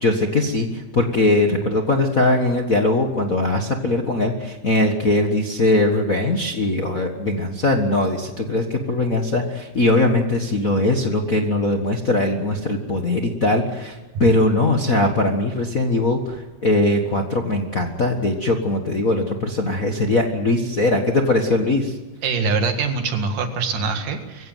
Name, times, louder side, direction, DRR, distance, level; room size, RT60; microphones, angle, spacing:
voice 1, 0.0-22.0, left 2 dB, 40° left, 2 dB, 1.3 m, -20 dB
voice 2, 22.2-24.5, right 4 dB, 75° right, 6 dB, 3.5 m, -23 dB
23.0 x 16.5 x 9.3 m, 1.2 s
omnidirectional pair, 3.7 m